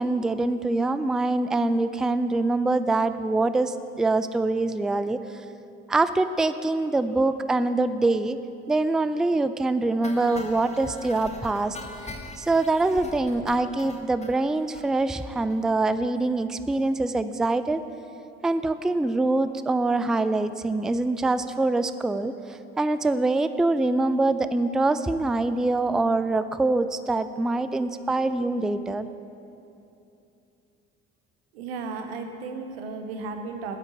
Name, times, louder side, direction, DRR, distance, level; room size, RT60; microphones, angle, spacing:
voice 1, 0.0-5.2 5.9-8.4 8.7-11.8 12.4-17.8 18.4-29.1, right 2 dB, ahead, 12 dB, 0.3 m, -24 dB
Indian Sound, 10.0-14.3 14.7-14.9 15.2-15.3 15.5-15.6 15.9-16.0, left 2 dB, 20° left, 1.2 m, -41 dB
voice 2, 31.5-33.8, right 4 dB, 90° right, 6 dB, 0.9 m, -34 dB
8.9 x 6.0 x 8.0 m, 2.8 s
hypercardioid pair, 65°, 29 cm